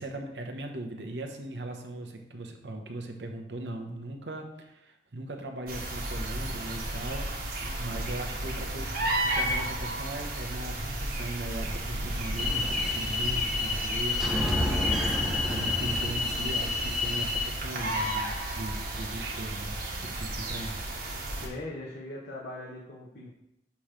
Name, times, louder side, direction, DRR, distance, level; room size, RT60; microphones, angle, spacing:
voice 1, 0.0-19.8 20.0-20.9, right 2 dB, 80° right, 4 dB, 0.9 m, -39 dB
sound 1, 5.7-21.5, right 1 dB, 55° right, 1.1 m, -33 dB
sound 2, 12.4-17.5, left 3 dB, ahead, 0.6 m, -29 dB
voice 2, 21.4-23.3, left 2 dB, 65° left, -6 dB, 1.0 m, -40 dB
7.0 x 3.1 x 5.0 m, 0.86 s
head